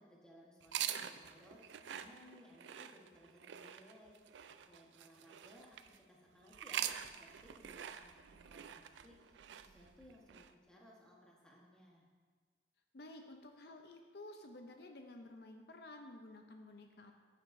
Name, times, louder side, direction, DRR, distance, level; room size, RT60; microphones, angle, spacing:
voice 1, 0.0-12.1, equal, 5° left, -4 dB, 1.2 m, -62 dB
sound 1, 0.6-6.0 6.5-10.5, right 10 dB, 85° right, 0.4 m, -45 dB
voice 2, 12.9-17.1, left 2 dB, 65° left, 4 dB, 0.5 m, -53 dB
9.0 x 8.7 x 2.6 m, 1.5 s
head